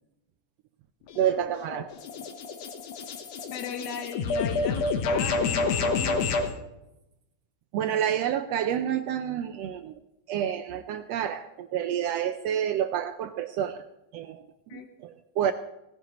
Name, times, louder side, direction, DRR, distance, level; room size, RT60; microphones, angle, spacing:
sound 1, 1.1-6.5, left 4 dB, 85° left, 2.6 m, -29 dB
voice 1, 1.2-1.9 7.7-10.0 10.3-13.8 14.1-14.5 14.7-15.5, right 9 dB, 80° right, 9 dB, 1.5 m, -29 dB
voice 2, 3.5-6.2 14.7-14.9, left 7 dB, 60° left, 5 dB, 1.1 m, -36 dB
17.5 x 15.5 x 3.1 m, 0.91 s
omnidirectional pair, 3.5 m